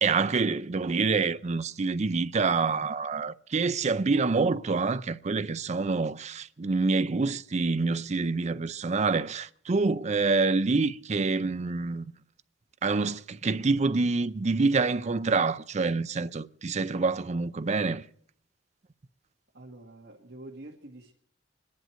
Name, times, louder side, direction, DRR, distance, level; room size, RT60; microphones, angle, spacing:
voice 1, 0.0-12.1 12.8-18.0, right 4 dB, 40° right, 0.5 m, -26 dB
voice 2, 19.5-21.1, right 1 dB, 60° right, 1.9 m, -46 dB
25.0 x 10.5 x 4.5 m
head